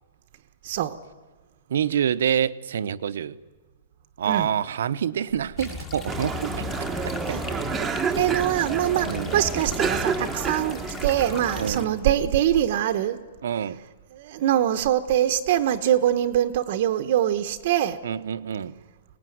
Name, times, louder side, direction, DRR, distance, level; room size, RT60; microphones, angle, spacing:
voice 1, 0.6-1.0 4.2-4.5 7.3-7.4 8.2-13.2 14.1-18.0, right 11 dB, 40° right, 1.0 m, -23 dB
voice 2, 1.7-3.4 4.2-6.8 7.3-7.9 8.3-8.4 9.1-9.4 11.6-11.9 13.4-13.8 18.0-18.7, right 9 dB, 65° right, 0.8 m, -27 dB
sound 1, 5.6-11.8, left 4 dB, 15° left, 1.5 m, -36 dB
Monterosso Cinque Terre Italy, 6.1-12.1, right 5 dB, 10° right, 1.0 m, -30 dB
24.0 x 19.5 x 9.4 m
hypercardioid pair, 170°, 0 cm